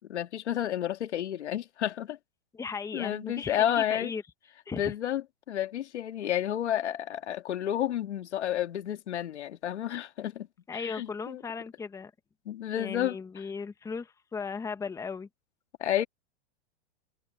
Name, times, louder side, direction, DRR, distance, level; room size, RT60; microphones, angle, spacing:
voice 1, 0.1-2.2 2.9-4.1 4.7-10.5 10.7-11.4 12.5-13.2 15.8-16.0, left 11 dB, 85° left, 2.1 m, -31 dB
voice 2, 2.5-4.2 4.7-4.9 10.7-12.1 12.7-15.3, left 5 dB, 10° left, 1.2 m, -37 dB
hypercardioid pair, 140°, 33 cm